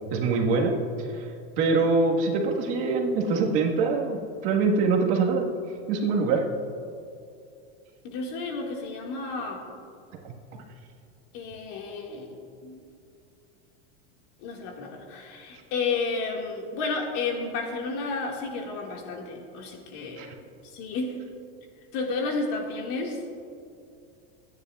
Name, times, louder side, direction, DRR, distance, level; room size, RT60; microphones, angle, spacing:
voice 1, 0.1-0.7 1.1-1.3 1.6-5.5 5.9-6.4 10.2-10.3 20.2-20.3, right 4 dB, 45° right, 0 dB, 1.6 m, -24 dB
voice 2, 8.0-9.7 11.3-12.8 14.4-20.3 20.6-21.2 21.9-23.3, left 3 dB, 55° left, 1 dB, 2.0 m, -32 dB
24.0 x 9.9 x 2.4 m, 2.4 s
supercardioid pair, 155°, 32 cm